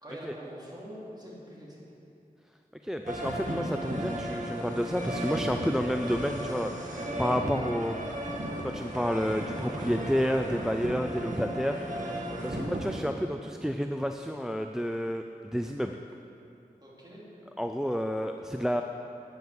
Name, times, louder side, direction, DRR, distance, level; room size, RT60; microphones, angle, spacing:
voice 1, 0.0-1.8 16.8-17.3, equal, 25° right, -6 dB, 3.1 m, -44 dB
voice 2, 2.8-8.0 8.6-11.8 12.1-15.9 17.6-18.8, equal, 5° right, 5 dB, 0.4 m, -30 dB
sound 1, 3.1-13.0, right 1 dB, 55° right, 1.6 m, -35 dB
9.5 x 9.1 x 7.1 m, 2.7 s
wide cardioid pair, 70°, 16 cm